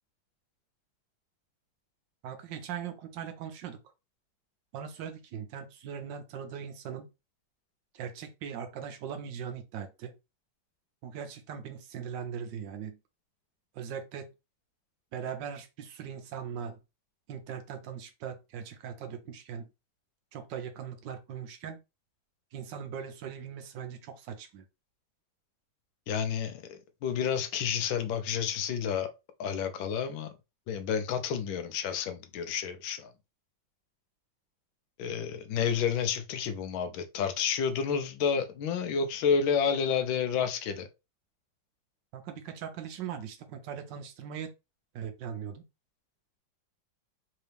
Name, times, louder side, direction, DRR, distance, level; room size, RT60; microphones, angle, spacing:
voice 1, 2.2-3.8 4.7-7.1 7.9-10.2 11.0-13.0 13.7-14.3 15.1-16.8 17.3-19.7 20.3-21.8 22.5-24.6 42.1-44.5 44.9-45.6, right 8 dB, 75° right, 1.3 m, -40 dB
voice 2, 26.1-29.1 29.4-30.3 30.7-33.1 35.0-40.9, left 7 dB, 90° left, 1.5 m, -30 dB
4.0 x 2.8 x 3.3 m
omnidirectional pair, 2.1 m